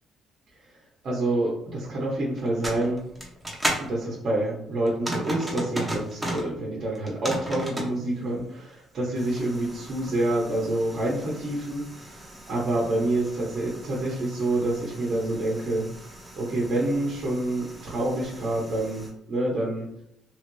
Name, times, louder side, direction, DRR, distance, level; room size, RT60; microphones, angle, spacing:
voice 1, 1.0-3.0 3.8-15.8 16.3-20.0, right 1 dB, 50° right, -5 dB, 0.9 m, -27 dB
sound 1, 2.4-3.9 4.9-6.5 6.9-7.9 9.2-19.1, right 1 dB, 10° right, 0.8 m, -36 dB
3.1 x 2.5 x 3.1 m, 0.74 s
cardioid pair, 120°, 0 cm